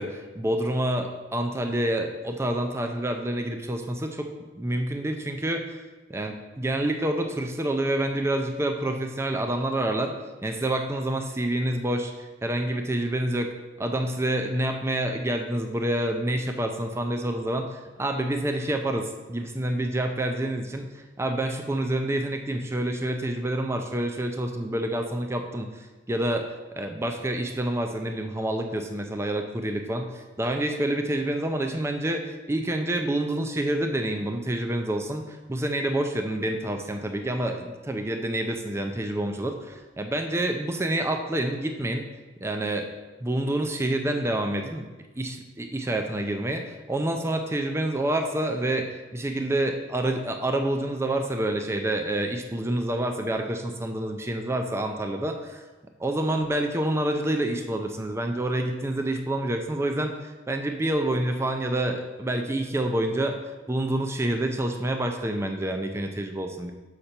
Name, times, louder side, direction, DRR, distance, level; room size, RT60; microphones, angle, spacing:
voice 1, 0.0-4.3 4.6-5.8 6.1-10.1 10.4-13.5 13.8-26.5 26.8-42.1 42.4-42.9 43.2-44.8 45.2-55.6 56.0-63.4 63.7-66.7, right 1 dB, 15° right, 4 dB, 0.4 m, -28 dB
6.6 x 5.6 x 4.3 m, 1.2 s
head